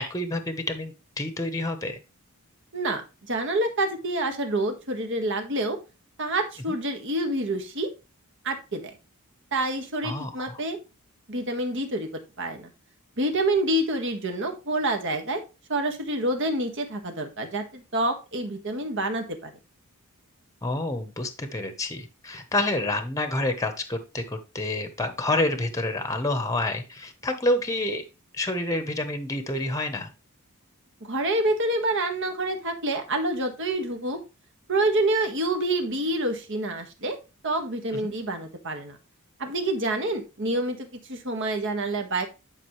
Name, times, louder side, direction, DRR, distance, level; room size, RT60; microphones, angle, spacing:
voice 1, 0.0-2.0 6.7-6.8 10.0-10.6 20.6-28.0 28.3-30.1 38.0-38.1, left 2 dB, 15° left, 8 dB, 1.0 m, -28 dB
voice 2, 2.7-5.8 6.2-7.9 8.4-8.9 9.5-10.8 11.3-12.7 13.2-15.4 15.7-19.5 31.0-34.2 34.7-37.2 37.4-39.0 39.4-42.2, right 1 dB, 55° right, 5 dB, 1.6 m, -27 dB
10.5 x 5.2 x 3.2 m, 0.28 s
head